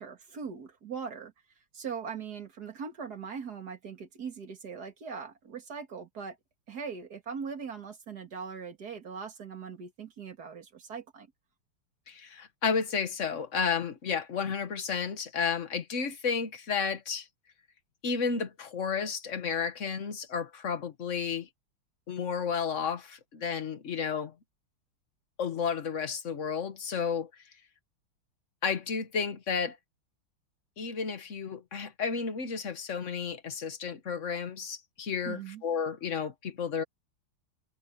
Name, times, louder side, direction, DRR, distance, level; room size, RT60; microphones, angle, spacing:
voice 1, 0.0-1.3 1.7-6.4 6.7-11.3 35.3-35.6, right 6 dB, 50° right, 2.5 m, -40 dB
voice 2, 12.1-17.3 18.0-21.5 22.1-24.3 25.4-27.3 28.6-29.8 30.8-36.8, left 6 dB, 40° left, 1.4 m, -32 dB
omnidirectional pair, 2.3 m